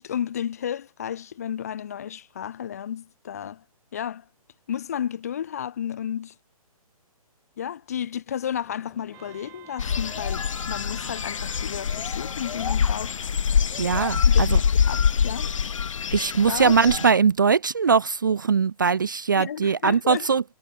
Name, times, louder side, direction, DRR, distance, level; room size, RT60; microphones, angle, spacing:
voice 1, 0.0-3.6 3.9-4.2 4.7-6.3 7.6-13.2 14.3-15.5 16.5-16.9 19.4-20.3, left 9 dB, 25° left, 0.8 m, -32 dB
Aircraft, 8.5-15.2, left 4 dB, 5° left, 7.5 m, -61 dB
Wind instrument woodwind instrument, 9.1-13.3, right 21 dB, 10° right, 3.6 m, -50 dB
sound 1, 9.8-17.1, left 7 dB, 55° left, 1.0 m, -24 dB
voice 2, 13.8-14.6 16.1-20.4, right 6 dB, 35° right, 0.5 m, -21 dB
hypercardioid pair, 180°, 19 cm